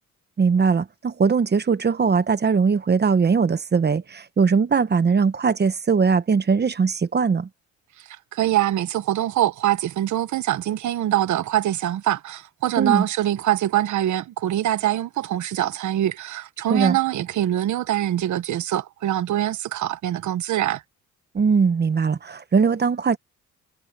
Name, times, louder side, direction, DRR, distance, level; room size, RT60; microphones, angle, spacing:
voice 1, 0.4-7.5 12.8-13.1 16.7-17.0 21.3-23.2, right 5 dB, 35° right, 1.2 m, -20 dB
voice 2, 8.0-20.8, right 12 dB, 75° right, 1.3 m, -24 dB
cardioid pair, 90°, 30 cm